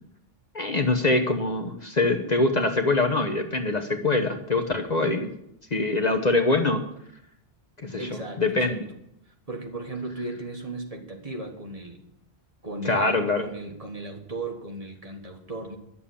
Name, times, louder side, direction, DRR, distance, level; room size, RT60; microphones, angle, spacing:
voice 1, 0.5-5.3 5.7-6.8 7.8-8.8 12.8-13.5, left 2 dB, 40° left, 6 dB, 1.0 m, -24 dB
voice 2, 8.0-8.8 9.3-12.0 12.6-15.8, right 2 dB, 35° right, 2 dB, 1.7 m, -36 dB
11.0 x 7.2 x 8.6 m, 0.77 s
omnidirectional pair, 1.1 m